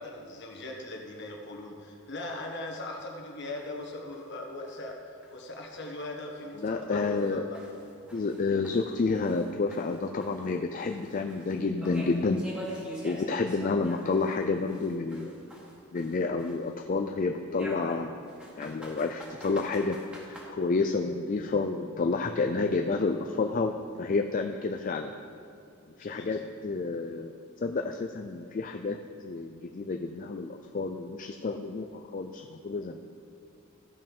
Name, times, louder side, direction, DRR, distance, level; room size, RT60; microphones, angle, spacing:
voice 1, 0.0-7.6 26.0-26.5, left 2 dB, 55° left, 1 dB, 1.5 m, -40 dB
sound 1, 3.6-3.7 4.1-4.2 4.7-4.8 5.2-5.3 5.8-5.9 6.4-6.5 7.0-9.5 9.7-14.4 14.7-16.7 17.5-20.4, equal, 5° right, 1.8 m, -44 dB
voice 2, 6.6-7.4 8.1-12.4 13.0-15.4 15.9-18.1 18.6-20.0 20.2-25.1 26.0-27.3 27.6-29.0 29.2-33.0, left 3 dB, 40° left, 5 dB, 0.4 m, -30 dB
15.0 x 5.4 x 5.4 m, 2.6 s
head